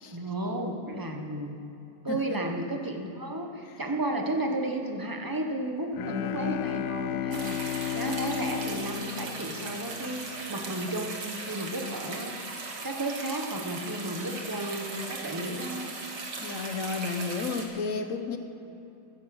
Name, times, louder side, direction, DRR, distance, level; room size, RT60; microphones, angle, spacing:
voice 1, 0.1-1.6 2.0-15.9, right 1 dB, 15° right, 3 dB, 1.2 m, -33 dB
voice 2, 2.1-2.4 16.4-18.4, left 4 dB, 55° left, 7 dB, 1.4 m, -32 dB
Bowed string instrument, 5.9-10.2, left 11 dB, 90° left, 1.2 m, -33 dB
sound 1, 7.3-17.6, right 3 dB, 90° right, 2.4 m, -38 dB
14.5 x 11.0 x 7.9 m, 2.8 s
omnidirectional pair, 1.7 m